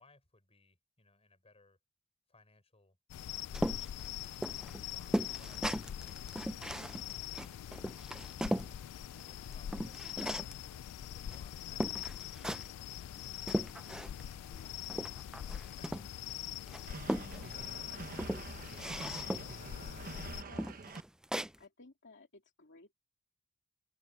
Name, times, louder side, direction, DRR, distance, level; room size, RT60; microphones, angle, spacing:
voice 1, 0.0-1.8 2.3-3.9 4.2-4.5 4.7-5.7 6.6-7.0 8.6-10.2 11.1-14.5 15.3-18.3, left 3 dB, 25° left, 6.4 m, -66 dB
sound 1, 3.1-20.4, left 11 dB, 90° left, 0.3 m, -43 dB
sound 2, 3.5-8.7 9.2-10.6 11.3-11.4 11.8-12.8 13.2-14.3 14.6-16.3 16.7-17.7 18.1-19.6 20.1-20.2 20.6-21.6, equal, 5° right, 0.4 m, -38 dB
voice 2, 14.5-14.9 19.9-20.7 21.6-22.9, left 2 dB, 55° left, 2.8 m, -59 dB
sound 3, 16.9-21.0, right 3 dB, 40° right, 0.9 m, -46 dB
open air
head